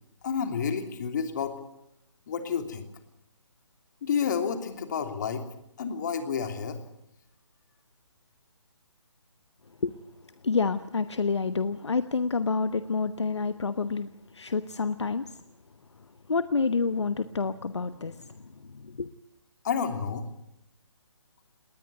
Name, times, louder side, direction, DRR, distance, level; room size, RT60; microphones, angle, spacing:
voice 1, 0.2-1.6 2.3-2.8 4.0-5.4 5.8-6.8 19.6-20.2, left 6 dB, 40° left, 6 dB, 3.1 m, -30 dB
voice 2, 10.4-14.1 14.3-15.2 16.3-18.3 18.7-19.1, left 4 dB, 65° left, 12 dB, 1.1 m, -28 dB
20.0 x 19.5 x 9.4 m, 0.82 s
figure-of-eight pair, 145°, 15 cm